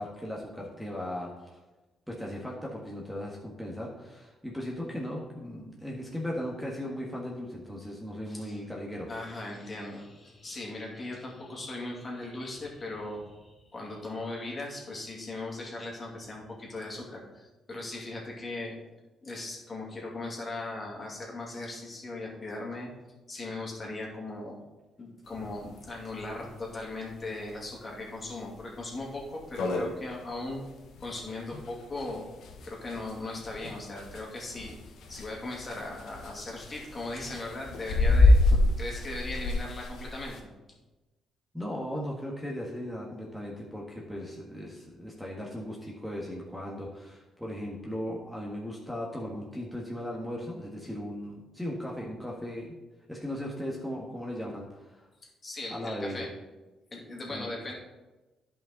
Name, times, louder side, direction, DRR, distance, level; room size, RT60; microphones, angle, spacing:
voice 1, 0.0-1.6 2.1-9.1 41.5-52.8 53.1-55.0 55.7-56.2 57.3-57.5, equal, ahead, -3 dB, 1.5 m, -37 dB
voice 2, 8.2-8.6 9.1-18.8 19.2-22.9 23.3-24.6 25.0-30.6 31.0-32.3 32.6-34.7 35.1-38.4 38.8-40.5 55.2-56.3 56.9-57.7, left 2 dB, 35° left, -2 dB, 2.4 m, -38 dB
sound 1, 25.4-25.5 25.7-25.8 26.2-26.3 26.8-27.1 27.6-27.7 28.2-28.3 28.6-28.7 29.1-29.2 29.4-40.4, left 2 dB, 75° left, 1.1 m, -27 dB
10.5 x 5.5 x 3.9 m, 1.1 s
cardioid pair, 90°, 0 cm